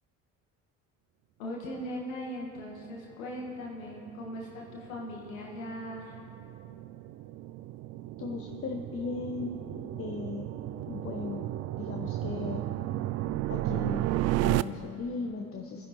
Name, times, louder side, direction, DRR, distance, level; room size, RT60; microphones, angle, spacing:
voice 1, 1.4-6.1, equal, 80° left, -2 dB, 1.7 m, -39 dB
sound 1, 3.5-14.6, right 16 dB, 40° right, 0.4 m, -34 dB
sound 2, 8.1-13.0, right 4 dB, 15° right, 0.9 m, -52 dB
voice 2, 8.2-9.6 10.0-10.5 10.9-11.5 11.8-12.6 13.5-14.1 14.4-15.9, left 4 dB, 35° left, 2 dB, 1.1 m, -37 dB
25.0 x 10.5 x 3.1 m, 2.6 s
figure-of-eight pair, 55°, 41 cm